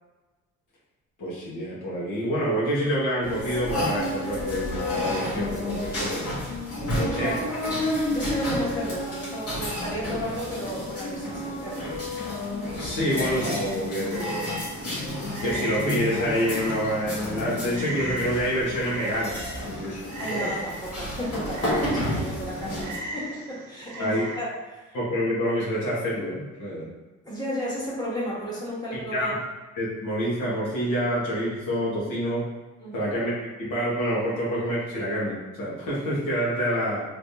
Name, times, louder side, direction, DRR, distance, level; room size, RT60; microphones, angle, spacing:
voice 1, 1.2-6.3 7.2-7.3 12.8-14.6 15.4-20.5 24.0-24.2 24.9-26.9 28.9-29.3 29.8-32.4 32.9-33.3 33.6-37.0, equal, 75° left, -7 dB, 1.5 m, -27 dB
sound 1, 3.2-23.0, left 1 dB, 50° left, 1.5 m, -30 dB
voice 2, 6.9-7.4 8.1-11.9 20.2-25.0 27.2-29.3 32.8-33.1, equal, 15° left, -7 dB, 1.4 m, -33 dB
Frog, 13.0-24.4, right 2 dB, 85° right, 0.7 m, -39 dB
3.3 x 3.1 x 2.8 m, 1.2 s
cardioid pair, 90°, 30 cm